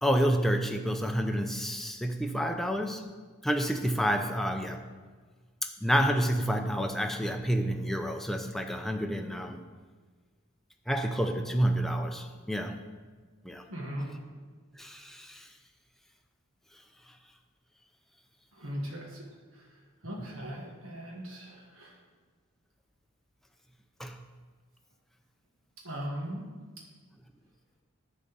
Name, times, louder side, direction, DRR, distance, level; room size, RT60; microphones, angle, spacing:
voice 1, 0.0-3.1 3.4-4.9 5.6-9.6 10.9-12.8 13.4-13.6 14.8-15.5 24.0-24.2, equal, ahead, 4 dB, 0.5 m, -29 dB
voice 2, 13.7-14.1 18.5-22.0 25.8-26.5, equal, 70° right, -2 dB, 1.6 m, -39 dB
10.5 x 4.0 x 6.9 m, 1.5 s
head